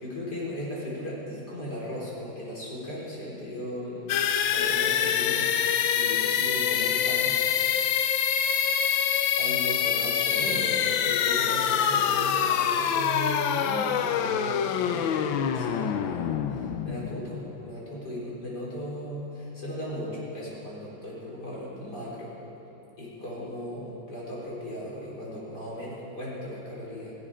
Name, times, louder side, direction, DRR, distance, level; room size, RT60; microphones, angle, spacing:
voice 1, 0.0-5.4 5.9-7.4 8.8-9.1 9.4-16.3 16.8-22.3 23.0-27.1, equal, 55° left, -6 dB, 4.9 m, -36 dB
sound 1, 4.1-17.8, left 8 dB, 85° left, 1.5 m, -25 dB
17.5 x 16.5 x 5.0 m, 2.9 s
omnidirectional pair, 2.1 m